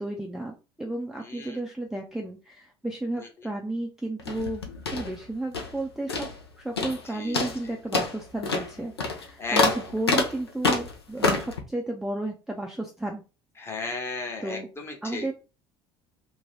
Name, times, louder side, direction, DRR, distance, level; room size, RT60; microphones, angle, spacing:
voice 1, 0.0-4.6 4.9-6.3 6.6-13.2 14.4-14.7 15.0-15.3, right 1 dB, 5° right, 0 dB, 0.4 m, -33 dB
voice 2, 1.3-1.6 3.2-3.3 7.1-7.5 9.4-9.6 13.6-15.3, left 3 dB, 20° left, 2 dB, 0.9 m, -34 dB
sound 1, 4.2-5.8 6.1-6.5 6.8-7.0 7.3-11.6, left 3 dB, 80° left, 0.5 m, -27 dB
2.8 x 2.2 x 3.0 m, 0.31 s
figure-of-eight pair, 60°, 13 cm